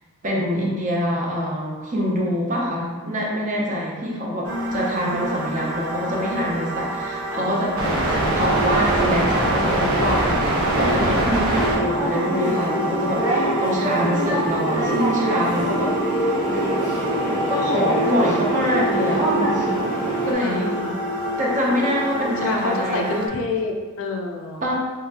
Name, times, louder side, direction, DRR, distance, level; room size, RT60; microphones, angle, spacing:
voice 1, 0.2-10.4 10.7-16.3 17.5-19.8 20.2-20.8 21.4-23.2 24.6-24.7, equal, 35° right, -3 dB, 0.7 m, -25 dB
sound 1, 4.4-23.3, right 1 dB, 75° right, 1.0 m, -25 dB
voice 2, 5.3-5.9 7.3-7.5 8.1-8.4 20.4-21.0 22.4-24.7, left 3 dB, 65° left, 2 dB, 0.5 m, -28 dB
sound 2, 12.0-20.3, equal, 15° right, 1.2 m, -25 dB
3.8 x 3.1 x 2.9 m, 1.4 s
head